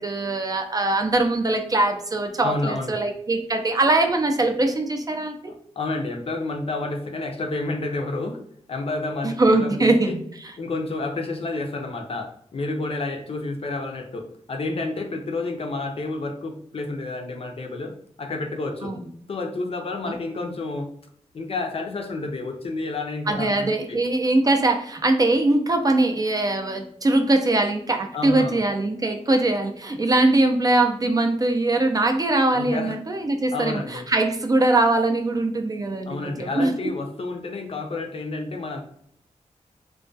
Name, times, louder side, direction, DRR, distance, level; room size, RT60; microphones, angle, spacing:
voice 1, 0.0-5.4 9.2-10.2 18.8-19.0 23.3-36.7, right 2 dB, 30° right, 4 dB, 0.3 m, -22 dB
voice 2, 2.4-3.0 5.8-8.4 8.7-9.9 10.6-17.9 18.2-18.9 19.3-20.9 21.3-24.0 28.1-28.6 32.5-33.0 33.5-34.0 36.0-38.8, left 2 dB, 50° left, 3 dB, 0.4 m, -30 dB
2.2 x 2.2 x 2.5 m, 0.68 s
wide cardioid pair, 75°, 12 cm